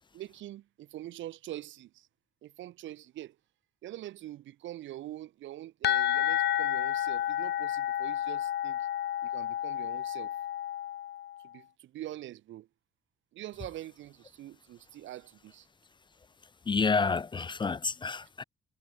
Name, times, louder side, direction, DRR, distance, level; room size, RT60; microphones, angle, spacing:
voice 1, 0.1-2.1 2.4-3.4 3.8-8.9 9.2-10.4 11.4-12.7 13.3-15.7, right 14 dB, 75° right, 0.7 m, -44 dB
sound 1, 5.8-11.4, left 11 dB, 60° left, 0.7 m, -31 dB
voice 2, 16.7-18.4, left 4 dB, 25° left, 0.4 m, -29 dB
cardioid pair, 90°, 20 cm